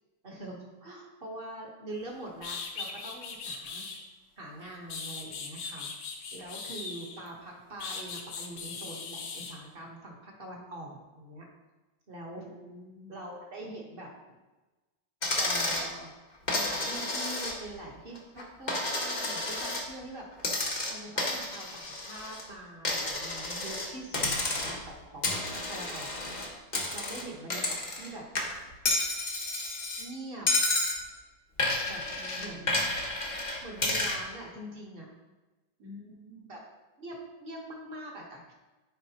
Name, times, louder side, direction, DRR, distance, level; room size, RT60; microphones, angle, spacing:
voice 1, 0.2-3.9 4.4-5.9 6.3-11.5 12.1-12.5 13.1-14.4 15.4-26.4 26.9-28.2 30.0-30.5 31.9-32.0 32.4-32.9 33.6-35.1 36.4-36.6 37.0-38.5, right 1 dB, 35° right, -1 dB, 1.2 m, -44 dB
sound 1, 2.0-2.1 2.4-4.0 4.6-7.3 7.8-9.6, left 5 dB, 70° left, 1.5 m, -39 dB
voice 2, 12.3-13.2 32.2-33.0 35.8-36.6, left 1 dB, 65° right, -8 dB, 2.4 m, -49 dB
Coin (dropping), 15.2-15.9 16.5-17.8 18.1-19.9 20.4-22.4 22.8-23.9 24.1-24.9 25.2-28.1 28.3-30.0 30.5-31.0 31.6-34.2, left 2 dB, 35° left, 0.7 m, -31 dB
9.9 x 4.7 x 2.9 m, 1.2 s
omnidirectional pair, 2.0 m